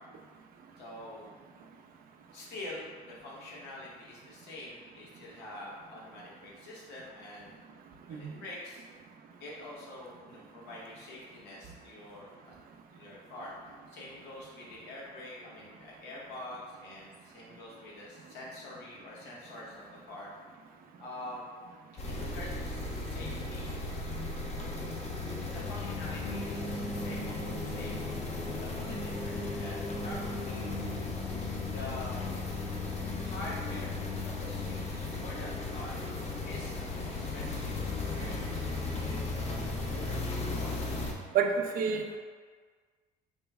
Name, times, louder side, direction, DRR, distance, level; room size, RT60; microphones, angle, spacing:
voice 1, 0.8-1.3 2.3-7.5 8.1-8.8 9.4-12.5 12.9-20.3 21.0-21.5 22.1-23.7 25.4-28.0 28.5-30.7 31.7-32.2 33.2-36.0 36.5-39.2 40.0-40.8 42.1-42.2, left 1 dB, 85° left, -5 dB, 1.0 m, -46 dB
sound 1, 22.0-41.1, left 3 dB, 40° left, 0.6 m, -35 dB
voice 2, 41.3-42.2, right 6 dB, 60° right, 5 dB, 0.4 m, -28 dB
4.3 x 2.0 x 3.4 m, 1.5 s
cardioid pair, 110°, 17 cm